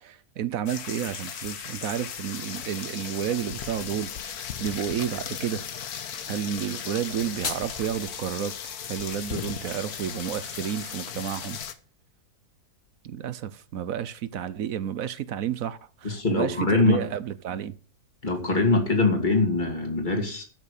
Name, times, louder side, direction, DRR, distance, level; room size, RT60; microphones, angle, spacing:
voice 1, 0.0-5.6 6.3-8.5 8.9-11.6 13.0-17.7, right 9 dB, 65° right, 1.1 m, -31 dB
sound 1, 0.7-11.7, left 8 dB, 70° left, 1.5 m, -36 dB
sound 2, 7.0-8.0, left 5 dB, 55° left, 1.8 m, -36 dB
voice 2, 16.0-17.0 18.2-20.4, left 3 dB, 30° left, 2.7 m, -23 dB
12.5 x 6.2 x 6.6 m
omnidirectional pair, 1.7 m